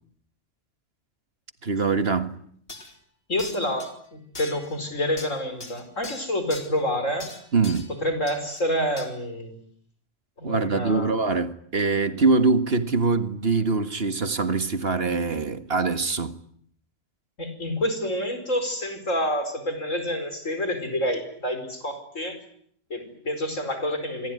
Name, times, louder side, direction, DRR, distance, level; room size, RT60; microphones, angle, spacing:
voice 1, 1.6-2.3 7.5-7.9 10.4-16.4, right 4 dB, 50° right, 1.9 m, -23 dB
sound 1, 2.1-2.2 2.7-2.9 3.4-3.9 4.3-4.8 5.2-6.7 7.2-7.9 8.3-8.6 9.0-9.1, left 2 dB, 50° left, 4.0 m, -40 dB
voice 2, 3.3-7.3 8.0-9.6 10.4-11.2 17.4-22.4 22.9-24.3, left 1 dB, 85° left, 5.3 m, -28 dB
26.5 x 21.5 x 9.6 m
omnidirectional pair, 1.3 m